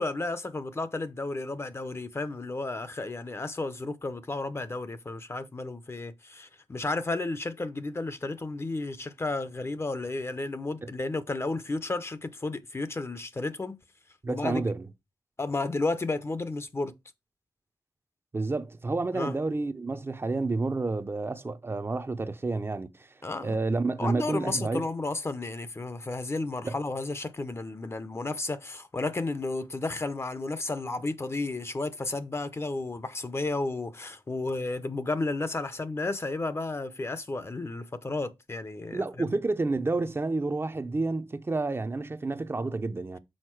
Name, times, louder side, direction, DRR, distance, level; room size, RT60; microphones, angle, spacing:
voice 1, 0.0-13.8 14.3-14.6 15.4-16.9 19.1-19.4 23.2-23.6 24.0-39.3, left 2 dB, 30° left, 0.7 m, -32 dB
voice 2, 14.2-14.9 18.3-23.1 23.4-24.8 26.6-26.7 38.9-43.2, right 3 dB, 25° right, 0.6 m, -30 dB
6.4 x 4.1 x 4.5 m
cardioid pair, 80°, 9 cm